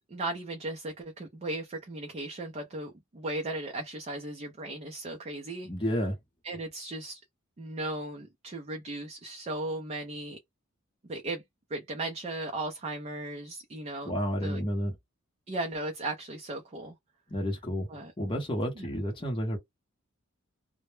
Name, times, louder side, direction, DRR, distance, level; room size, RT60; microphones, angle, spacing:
voice 1, 0.1-5.7 6.4-7.2 7.6-10.4 11.0-11.4 11.7-14.1 14.4-14.6 15.5-17.0 17.9-18.1 18.8-18.9, right 2 dB, 30° right, 0.4 m, -36 dB
voice 2, 5.7-6.1 14.0-14.9 17.3-17.9 18.2-19.6, equal, 25° left, 0.7 m, -30 dB
2.1 x 2.0 x 3.1 m
head